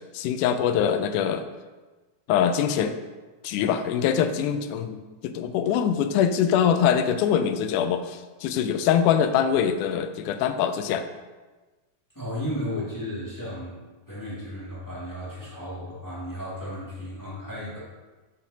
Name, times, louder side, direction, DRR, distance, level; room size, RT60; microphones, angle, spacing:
voice 1, 0.1-1.5 2.3-3.0 3.4-11.1, left 8 dB, 85° left, 9 dB, 2.0 m, -23 dB
voice 2, 12.1-17.8, equal, 10° left, -8 dB, 1.4 m, -34 dB
8.1 x 7.0 x 2.8 m, 1.3 s
omnidirectional pair, 3.5 m